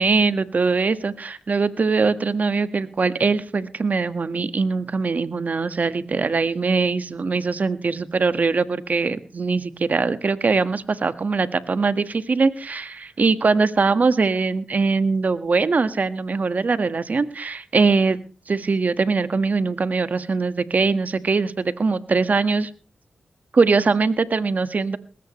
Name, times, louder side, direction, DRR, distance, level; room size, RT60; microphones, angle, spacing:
voice 1, 0.0-18.2 18.5-22.7 23.5-25.0, right 4 dB, 55° right, 12 dB, 1.6 m, -22 dB
20.0 x 17.0 x 3.2 m, 0.35 s
cardioid pair, 50°, 3 cm